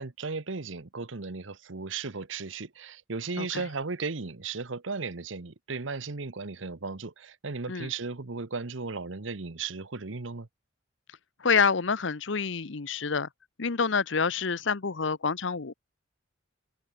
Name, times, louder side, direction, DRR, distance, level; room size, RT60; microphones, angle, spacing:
voice 1, 0.0-10.5, right 4 dB, 75° right, 1.1 m, -36 dB
voice 2, 3.4-3.7 7.7-7.9 11.4-13.3 13.6-15.7, left 5 dB, 65° left, 0.9 m, -27 dB
head